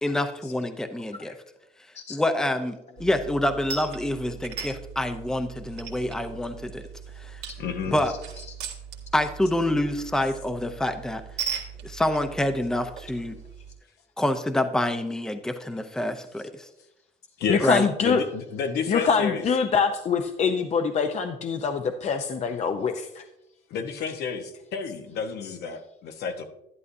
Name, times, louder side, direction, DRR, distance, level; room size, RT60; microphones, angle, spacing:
voice 1, 0.0-1.3 2.1-6.8 7.2-7.4 7.9-8.1 9.1-11.2 11.8-13.3 14.2-16.7 17.6-17.9, left 1 dB, 5° left, 7 dB, 0.7 m, -27 dB
sound 1, 3.0-13.7, right 7 dB, 85° right, 1.8 m, -39 dB
voice 2, 7.6-8.0 17.4-17.7 18.0-19.4 23.7-26.5, left 6 dB, 75° left, 5 dB, 1.2 m, -30 dB
voice 3, 17.5-18.2 18.9-23.2, left 5 dB, 40° left, 6 dB, 0.7 m, -24 dB
11.0 x 11.0 x 2.7 m, 0.89 s
cardioid pair, 110°, 17 cm